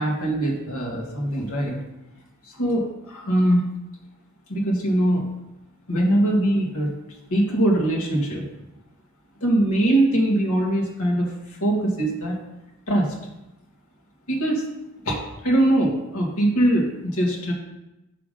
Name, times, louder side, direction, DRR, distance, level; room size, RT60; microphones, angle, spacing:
voice 1, 0.0-1.8 2.5-3.6 4.5-5.2 5.9-6.9 7.3-8.4 9.4-11.3 11.6-12.4 12.9-13.1 14.3-14.6 15.0-17.5, right 1 dB, 90° left, -1 dB, 1.7 m, -22 dB
5.9 x 5.9 x 5.1 m, 0.93 s
head